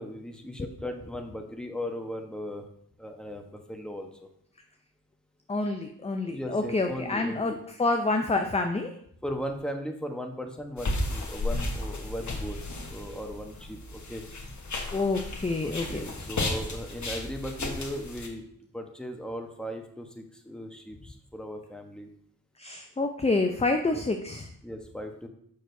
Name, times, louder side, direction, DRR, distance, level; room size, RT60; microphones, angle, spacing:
voice 1, 0.0-2.6 3.0-4.3 6.3-7.6 9.2-12.6 12.9-14.2 15.6-18.5 18.7-22.1 23.9-24.0 24.6-25.3, equal, ahead, 3 dB, 1.1 m, -37 dB
voice 2, 5.5-8.9 14.9-16.0 22.6-24.5, left 3 dB, 20° left, 5 dB, 0.6 m, -28 dB
sound 1, 10.8-18.3, left 2 dB, 55° left, 1.3 m, -34 dB
6.5 x 6.1 x 2.7 m, 0.68 s
cardioid pair, 40°, 35 cm